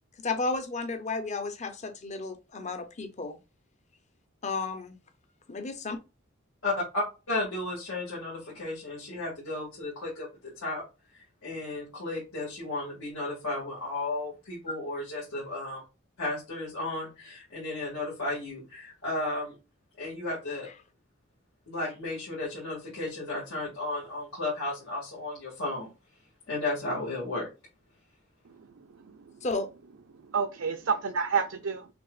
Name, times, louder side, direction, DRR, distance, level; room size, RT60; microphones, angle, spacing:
voice 1, 0.2-3.4 4.4-4.9 5.5-6.0 29.4-29.7, left 3 dB, 35° left, 0.7 m, -33 dB
voice 2, 6.6-10.3 10.6-10.8 11.1-15.8 16.2-19.5 20.0-20.7 21.7-25.9 26.5-27.5, left 2 dB, 90° left, 2.0 m, -34 dB
voice 3, 28.8-29.4 30.3-31.9, right 5 dB, 70° right, 0.5 m, -30 dB
5.9 x 2.8 x 2.4 m
head